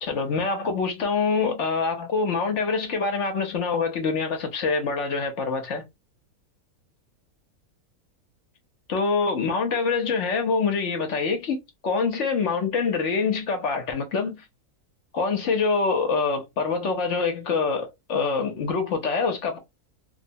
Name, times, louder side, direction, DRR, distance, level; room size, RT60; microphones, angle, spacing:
voice 1, 0.0-5.8 8.9-14.4 15.1-19.6, left 4 dB, 60° left, 0.9 m, -25 dB
2.9 x 2.1 x 2.6 m
omnidirectional pair, 1.6 m